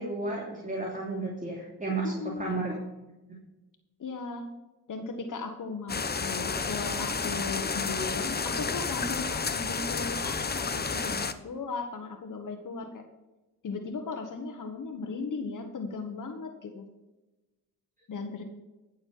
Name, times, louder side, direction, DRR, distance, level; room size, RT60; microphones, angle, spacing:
voice 1, 0.0-2.7 3.3-3.4, right 2 dB, 25° right, -2 dB, 2.9 m, -33 dB
voice 2, 2.0-2.5 4.0-4.5 4.9-13.0 13.6-16.8 18.1-18.4, left 4 dB, 60° left, 5 dB, 1.4 m, -37 dB
sound 1, 5.9-11.3, left 5 dB, 30° left, 0.9 m, -31 dB
15.0 x 6.7 x 4.7 m, 1.1 s
cardioid pair, 65°, 35 cm